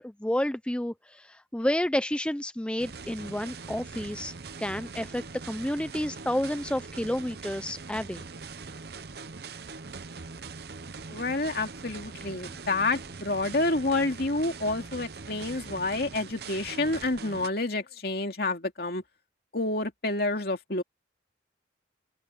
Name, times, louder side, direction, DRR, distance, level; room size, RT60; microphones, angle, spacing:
voice 1, 0.0-4.3 4.6-8.3, left 1 dB, 5° left, 0.4 m, -30 dB
sound 1, 2.8-17.5, right 4 dB, 60° right, 0.8 m, -42 dB
voice 2, 11.1-19.0 19.5-20.8, left 2 dB, 55° left, 2.6 m, -29 dB
open air
head